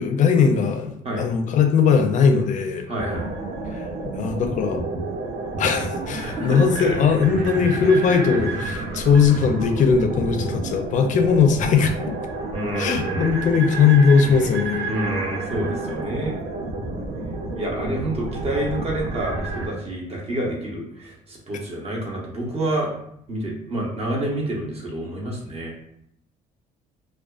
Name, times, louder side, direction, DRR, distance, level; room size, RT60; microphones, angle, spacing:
voice 1, 0.0-2.9 3.7-3.9 4.1-4.8 5.6-12.0 12.8-14.9, left 6 dB, 50° left, 5 dB, 0.4 m, -19 dB
voice 2, 2.9-3.3 6.2-7.0 12.5-13.4 14.9-16.4 17.5-22.9 23.3-25.7, right 1 dB, 35° right, -2 dB, 0.8 m, -28 dB
sound 1, 3.0-19.7, right 3 dB, 70° right, 0.5 m, -30 dB
2.4 x 2.2 x 2.3 m, 0.72 s
cardioid pair, 110°, 17 cm